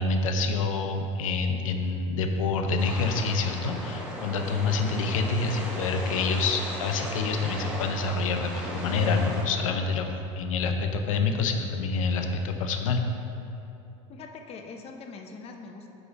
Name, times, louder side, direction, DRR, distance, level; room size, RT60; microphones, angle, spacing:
voice 1, 0.0-10.1 10.3-13.0, left 4 dB, 90° left, 5 dB, 0.6 m, -27 dB
sound 1, 2.8-9.4, equal, 5° right, 1.3 m, -36 dB
voice 2, 14.1-16.0, left 4 dB, 35° left, 3 dB, 0.6 m, -43 dB
5.0 x 4.8 x 5.2 m, 2.8 s
supercardioid pair, 105°, 17 cm